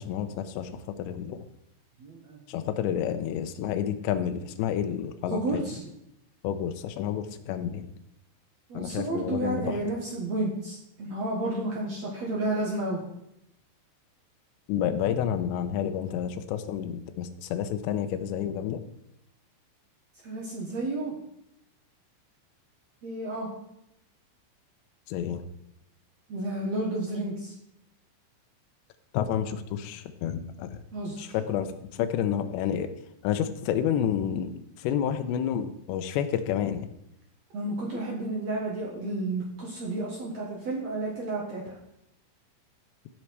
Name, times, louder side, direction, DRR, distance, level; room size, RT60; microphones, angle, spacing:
voice 1, 0.0-1.4 2.5-5.6 6.4-7.9 8.7-9.7 14.7-18.8 25.1-25.4 29.1-30.8 31.2-32.9 33.2-36.9, left 9 dB, 80° left, 9 dB, 2.8 m, -30 dB
voice 2, 2.0-2.7 5.3-5.8 8.7-13.0 20.2-21.2 23.0-23.5 26.3-27.5 30.9-31.2 37.5-41.7, right 2 dB, 70° right, -2 dB, 1.5 m, -31 dB
16.0 x 5.5 x 4.6 m, 0.81 s
omnidirectional pair, 5.5 m